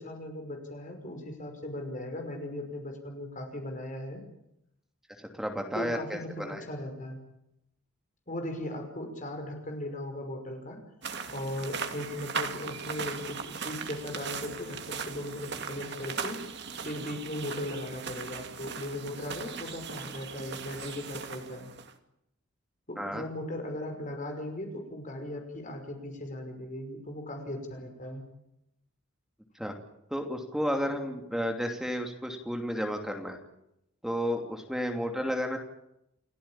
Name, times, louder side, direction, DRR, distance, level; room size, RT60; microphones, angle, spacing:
voice 1, 0.0-4.2 5.7-7.2 8.3-10.8 11.3-16.4 16.8-21.7 22.9-28.2, left 1 dB, 40° left, 4 dB, 5.5 m, -38 dB
voice 2, 5.2-6.6 23.0-23.2 29.5-29.7 30.1-33.4 34.0-35.6, equal, ahead, 3 dB, 2.8 m, -32 dB
sound 1, 11.0-21.9, right 5 dB, 55° right, 2.5 m, -38 dB
29.5 x 16.0 x 8.9 m, 0.80 s
head